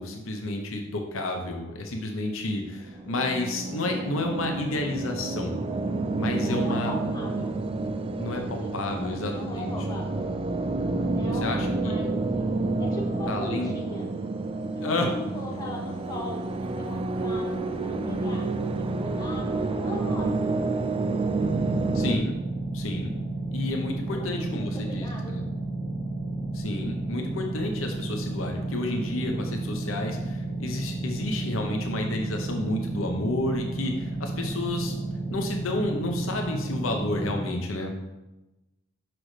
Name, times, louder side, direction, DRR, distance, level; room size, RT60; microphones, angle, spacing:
voice 1, 0.0-5.5 6.2-6.9 8.2-9.7 11.4-11.9 13.3-13.8 14.8-15.1 21.9-22.4 22.7-23.1 23.5-25.4 26.5-34.9 35.3-37.9, left 2 dB, 80° left, 3 dB, 0.8 m, -31 dB
sound 1, 2.7-22.2, right 3 dB, 25° right, 0.4 m, -29 dB
voice 2, 6.4-7.6 8.4-10.3 11.1-14.1 14.7-19.5 19.8-20.4 24.1-25.4, left 1 dB, 20° left, -3 dB, 1.4 m, -39 dB
sound 2, 21.4-37.4, right 2 dB, 5° left, 1.7 m, -32 dB
6.1 x 6.0 x 3.2 m, 1.0 s
head